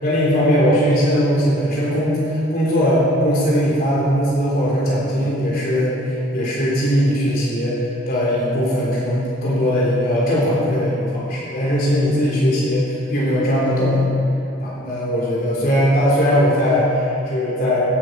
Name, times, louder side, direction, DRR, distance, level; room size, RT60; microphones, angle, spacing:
voice 1, 0.0-14.2 14.6-17.8, equal, 55° left, -6 dB, 3.6 m, -19 dB
16.0 x 9.3 x 5.8 m, 2.6 s
head